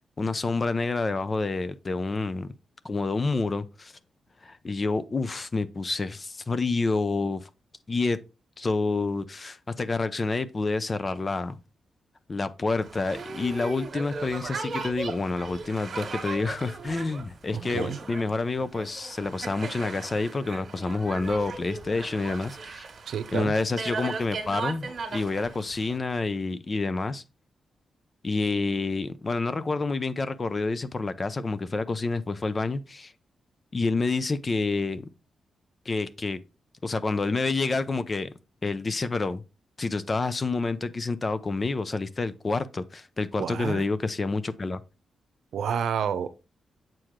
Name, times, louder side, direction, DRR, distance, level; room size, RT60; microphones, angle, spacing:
voice 1, 0.2-2.5 2.8-3.9 4.4-7.5 7.9-8.2 8.6-11.6 12.3-22.9 23.3-27.2 28.2-33.1 33.7-35.1 35.9-36.4 36.8-38.3 38.6-39.4 39.8-44.8, left 3 dB, 30° left, 0.5 m, -28 dB
Boat Water vehicle, 12.8-26.0, right 4 dB, 50° right, 1.7 m, -37 dB
voice 2, 23.1-23.5 43.4-43.9 45.5-46.4, right 7 dB, 80° right, 0.7 m, -29 dB
7.6 x 4.7 x 3.6 m
wide cardioid pair, 135°, 0 cm